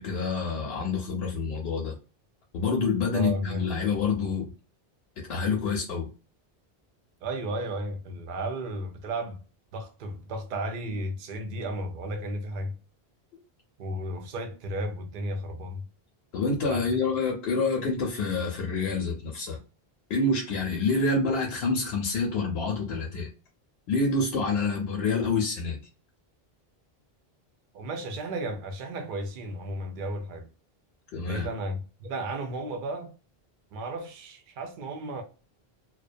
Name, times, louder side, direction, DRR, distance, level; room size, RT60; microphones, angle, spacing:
voice 1, 0.0-2.0 2.5-4.5 5.3-6.1 16.3-19.6 20.1-23.3 23.9-25.8 31.1-31.5, left 4 dB, 85° left, 0.8 m, -27 dB
voice 2, 3.1-3.7 7.2-9.4 9.7-12.8 13.8-15.9 16.6-16.9 27.7-30.5 31.3-33.1 33.7-35.2, right 1 dB, 60° right, 0.7 m, -34 dB
2.3 x 2.2 x 2.5 m
omnidirectional pair, 1.0 m